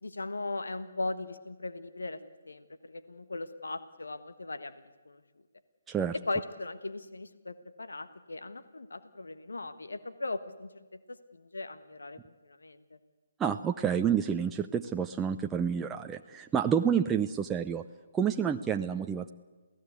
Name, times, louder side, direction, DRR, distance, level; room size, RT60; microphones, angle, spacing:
voice 1, 0.0-2.2 2.4-4.7 5.0-5.2 6.3-10.8 11.1-13.0, left 2 dB, 75° left, 12 dB, 1.3 m, -38 dB
voice 2, 13.4-17.8 18.1-19.3, right 8 dB, 10° right, 4 dB, 0.6 m, -29 dB
27.5 x 17.0 x 8.2 m, 1.4 s
figure-of-eight pair, 140°, 0 cm